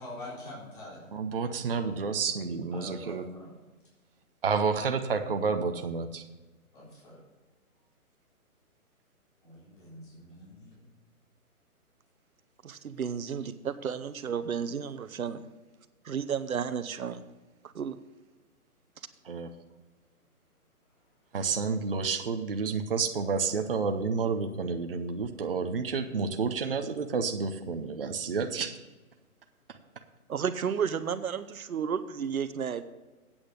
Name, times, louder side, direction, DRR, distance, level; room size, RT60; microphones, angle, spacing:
voice 1, 0.0-1.0 2.7-3.5 6.7-7.2 9.4-10.9, left 1 dB, 35° left, -6 dB, 3.8 m, -45 dB
voice 2, 1.1-3.2 4.4-6.3 19.2-19.5 21.3-28.8 29.7-29.8, right 5 dB, 40° right, 6 dB, 0.7 m, -30 dB
voice 3, 12.6-15.4 16.0-17.2 17.7-18.0 30.3-32.8, right 7 dB, 70° right, 12 dB, 0.9 m, -32 dB
8.7 x 8.0 x 5.1 m, 1.2 s
hypercardioid pair, 170°, 44 cm